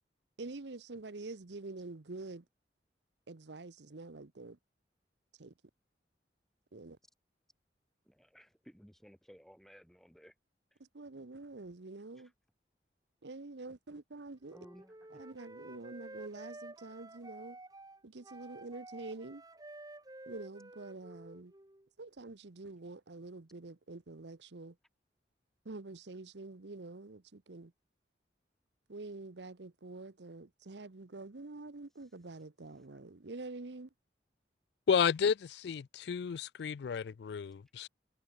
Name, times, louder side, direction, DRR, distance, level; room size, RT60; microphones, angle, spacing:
voice 1, 0.4-2.4 3.3-4.6 5.4-5.5 6.7-7.0 10.8-12.3 13.2-14.6 15.1-17.6 18.0-19.4 20.3-21.5 22.0-24.7 25.6-27.7 28.9-33.9, right 3 dB, 75° right, 0.9 m, -46 dB
voice 2, 8.0-10.3 10.7-10.8 12.1-12.3 14.5-15.2 31.9-32.1 32.7-33.0 37.5-37.6, equal, ahead, 3.0 m, -59 dB
Wind instrument woodwind instrument, 14.4-21.9, right 2 dB, 20° right, 2.0 m, -51 dB
voice 3, 34.9-37.9, left 6 dB, 65° left, 0.3 m, -32 dB
head